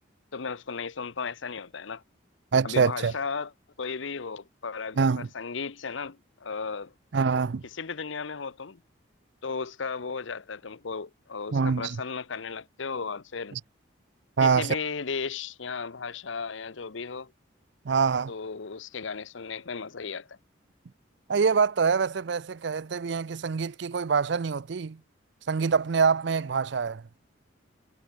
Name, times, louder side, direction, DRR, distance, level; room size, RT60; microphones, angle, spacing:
voice 1, 0.3-2.0 2.6-3.5 3.8-6.9 7.7-8.8 9.4-13.6 14.4-17.3 18.3-20.4, left 5 dB, 75° left, 0.9 m, -35 dB
voice 2, 2.5-3.1 5.0-5.3 7.1-7.6 11.5-12.0 13.5-13.6 14.4-14.8 17.9-18.3 21.3-25.0 25.5-27.0, right 5 dB, 65° right, 0.5 m, -25 dB
head